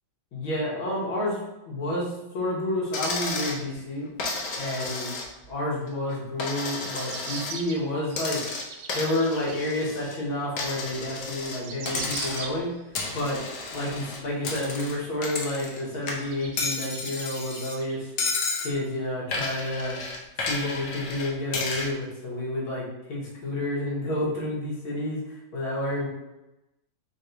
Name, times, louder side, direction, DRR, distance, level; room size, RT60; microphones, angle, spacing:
voice 1, 0.3-1.4 1.7-4.1 4.5-5.1 5.5-8.4 8.9-12.7 13.1-13.4 13.7-18.1 18.6-20.0 20.5-26.1, left 1 dB, 85° left, -5 dB, 2.2 m, -30 dB
Coin (dropping), 2.9-3.6 4.2-5.5 5.9-7.6 8.1-10.2 10.6-11.6 11.9-12.6 12.9-15.8 16.1-17.8 18.2-18.7 19.3-21.9, left 3 dB, 65° left, 1.3 m, -32 dB
sound 1, 6.8-9.7 10.1-10.2 11.0-11.1 11.3-12.8 13.2-14.1 14.7-14.8 15.3-15.4 15.9-18.4 18.8-18.9, right 5 dB, 85° right, 1.4 m, -41 dB
4.5 x 2.7 x 4.4 m, 0.97 s
omnidirectional pair, 2.2 m